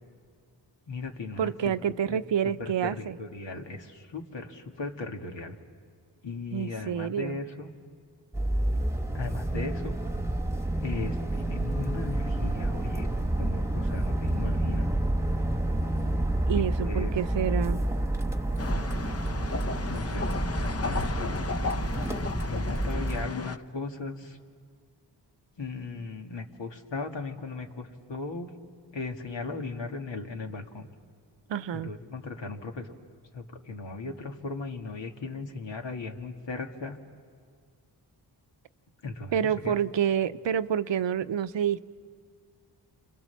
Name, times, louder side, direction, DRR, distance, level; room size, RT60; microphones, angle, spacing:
voice 1, 0.9-2.2 2.4-5.6 6.2-7.7 9.1-10.0 10.8-13.1 13.4-14.9 16.5-17.1 19.9-21.8 22.4-24.4 25.6-28.5 28.9-30.9 31.7-33.0 33.3-37.0 39.0-39.8, left 3 dB, 75° left, 3 dB, 2.2 m, -37 dB
voice 2, 1.4-3.2 6.5-7.4 16.5-17.8 31.5-31.9 39.3-41.8, right 8 dB, 80° right, 13 dB, 0.8 m, -28 dB
sound 1, 8.3-23.3, right 1 dB, 5° right, 1.4 m, -29 dB
sound 2, 18.6-23.6, left 4 dB, 35° left, 0.7 m, -34 dB
29.0 x 27.0 x 7.1 m, 2.1 s
cardioid pair, 60°, 44 cm